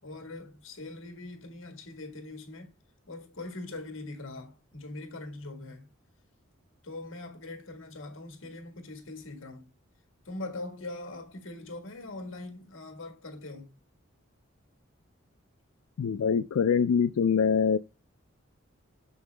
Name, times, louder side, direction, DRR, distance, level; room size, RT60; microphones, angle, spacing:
voice 1, 0.0-2.7 3.1-5.9 6.8-9.7 10.2-13.8, left 2 dB, 70° left, 1.6 m, -42 dB
voice 2, 16.0-17.8, left 6 dB, 85° left, 0.4 m, -24 dB
6.8 x 5.5 x 3.3 m
head